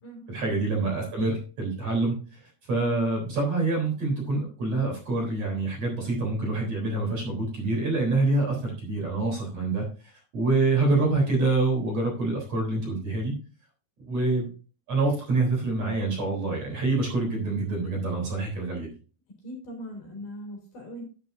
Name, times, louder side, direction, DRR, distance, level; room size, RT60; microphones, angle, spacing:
voice 1, 0.3-2.4 2.7-9.8 10.3-13.4 14.0-14.5 14.9-18.9, right 3 dB, 40° right, -1 dB, 4.6 m, -26 dB
voice 2, 19.4-21.0, equal, 50° left, 1 dB, 4.8 m, -40 dB
11.0 x 10.0 x 2.7 m, 0.36 s
omnidirectional pair, 4.8 m